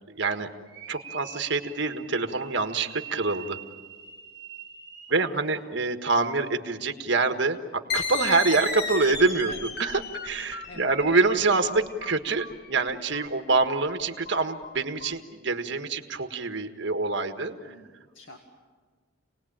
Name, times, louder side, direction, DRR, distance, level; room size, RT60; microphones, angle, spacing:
voice 1, 0.1-0.5 0.9-3.6 5.1-17.7, right 3 dB, 60° right, 7 dB, 1.6 m, -26 dB
sound 1, 0.7-5.4, right 9 dB, 20° right, 1.7 m, -44 dB
voice 2, 5.1-5.4 9.5-9.6 10.7-10.9 17.6-18.4, left 2 dB, 70° left, 2 dB, 2.0 m, -47 dB
sound 2, 7.9-15.1, left 4 dB, 50° left, 1.6 m, -34 dB
28.0 x 19.5 x 8.8 m, 1.5 s
head